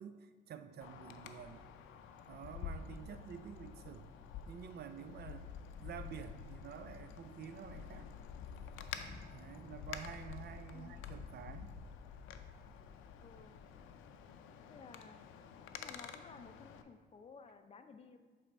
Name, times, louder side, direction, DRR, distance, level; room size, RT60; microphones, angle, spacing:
voice 1, 0.0-1.6 2.3-4.1 4.5-5.5 5.8-8.1 9.3-11.8, right 8 dB, 55° right, 10 dB, 0.4 m, -49 dB
Wind, 0.8-16.8, left 7 dB, 90° left, 0.4 m, -49 dB
sound 1, 8.6-13.2, left 1 dB, 5° left, 1.4 m, -62 dB
voice 2, 10.7-11.1 13.2-13.5 14.7-15.2 15.7-18.2, left 5 dB, 30° left, 8 dB, 0.5 m, -55 dB
7.8 x 3.4 x 4.2 m, 1.5 s
cardioid pair, 90°, 20 cm